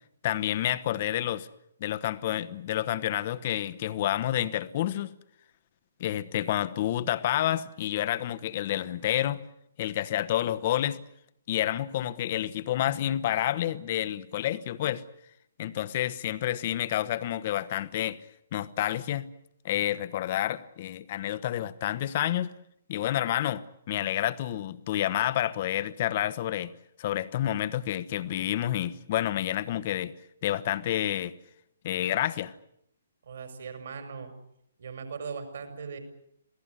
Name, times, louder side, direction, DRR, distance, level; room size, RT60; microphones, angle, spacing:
voice 1, 0.2-1.5 1.8-5.1 6.0-9.4 9.8-11.0 11.5-15.0 15.6-18.2 18.5-19.3 19.6-22.5 22.9-26.7 27.0-30.1 30.4-31.3 31.8-32.5, left 12 dB, 40° left, 14 dB, 1.3 m, -29 dB
voice 2, 33.2-34.3 34.8-36.0, right 5 dB, 60° right, 7 dB, 5.9 m, -39 dB
27.5 x 18.0 x 9.5 m, 0.74 s
figure-of-eight pair, 125°, 0 cm